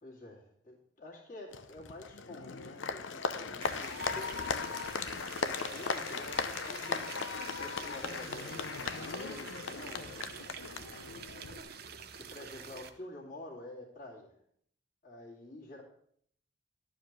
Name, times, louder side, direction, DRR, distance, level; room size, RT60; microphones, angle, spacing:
voice 1, 0.0-4.5 5.4-7.1 7.6-10.2 12.2-14.4 15.0-15.8, left 1 dB, 40° left, -4 dB, 2.5 m, -48 dB
Applause, 1.5-11.6, left 5 dB, 85° left, 0.7 m, -37 dB
sound 1, 3.6-12.9, right 7 dB, 55° right, 0.8 m, -47 dB
11.5 x 4.9 x 7.4 m, 0.66 s
head